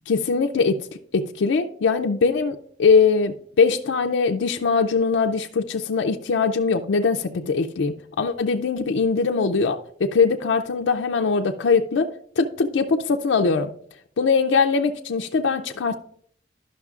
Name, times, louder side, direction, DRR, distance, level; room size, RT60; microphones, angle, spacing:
voice 1, 0.1-0.8 1.1-12.1 12.4-13.7 14.2-16.0, left 5 dB, 85° left, 4 dB, 0.4 m, -21 dB
12.0 x 5.8 x 2.4 m, 0.63 s
head